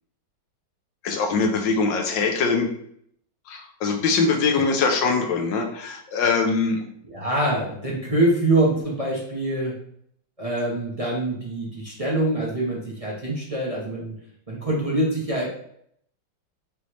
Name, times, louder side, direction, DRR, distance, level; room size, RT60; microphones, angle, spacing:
voice 1, 1.0-2.7 3.5-6.8, left 4 dB, 75° left, 3 dB, 1.4 m, -22 dB
voice 2, 7.1-9.7 10.4-14.2 14.5-15.5, right 1 dB, 35° right, -4 dB, 0.6 m, -24 dB
5.4 x 3.2 x 3.0 m, 0.67 s
omnidirectional pair, 2.1 m